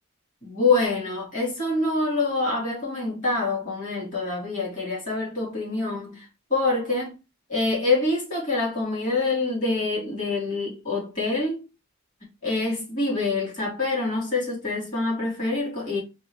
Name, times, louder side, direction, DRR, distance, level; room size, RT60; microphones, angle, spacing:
voice 1, 0.4-7.1 7.5-11.7 12.4-16.0, left 3 dB, 40° left, 2.2 m, -26 dB
5.3 x 2.5 x 3.3 m
head